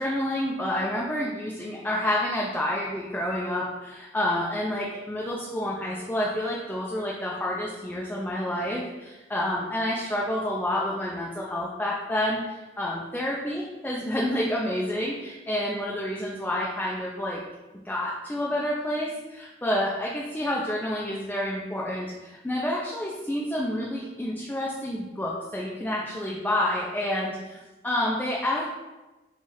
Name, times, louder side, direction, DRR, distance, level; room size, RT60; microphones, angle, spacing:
voice 1, 0.0-17.4 17.8-27.6 27.8-28.6, left 1 dB, 10° left, -4 dB, 0.4 m, -29 dB
3.1 x 2.3 x 4.1 m, 1.1 s
head